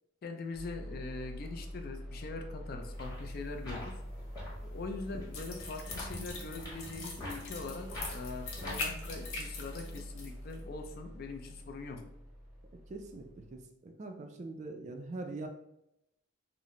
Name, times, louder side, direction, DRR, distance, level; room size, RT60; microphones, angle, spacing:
voice 1, 0.2-4.0 4.6-12.0, left 3 dB, 45° left, 4 dB, 0.4 m, -42 dB
sound 1, 0.5-13.6, equal, ahead, 0.7 m, -45 dB
sound 2, 2.8-9.1, left 1 dB, 20° left, 1.1 m, -46 dB
sound 3, 5.3-10.3 10.5-10.6, left 3 dB, 85° left, 0.8 m, -42 dB
voice 2, 12.9-15.5, right 2 dB, 35° right, 5 dB, 0.3 m, -43 dB
3.9 x 2.0 x 2.9 m, 0.83 s
head